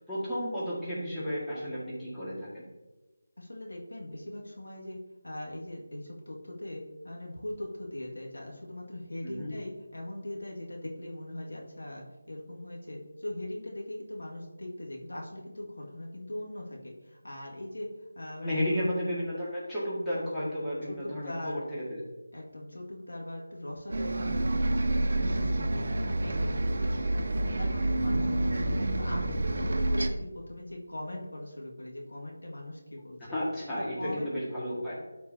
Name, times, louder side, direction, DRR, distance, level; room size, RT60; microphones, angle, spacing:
voice 1, 0.0-2.6 9.2-9.5 18.4-22.0 25.3-25.7 33.2-35.0, equal, 5° left, -12 dB, 1.9 m, -33 dB
voice 2, 3.4-5.0 5.2-17.9 18.2-18.9 20.9-21.6 22.3-27.2 27.5-33.2 33.8-34.3, left 1 dB, 80° left, -2 dB, 2.0 m, -40 dB
Bus, 23.9-30.1, right 1 dB, 55° right, 0.7 m, -28 dB
13.0 x 4.7 x 2.8 m, 1.1 s
figure-of-eight pair, 165°, 0 cm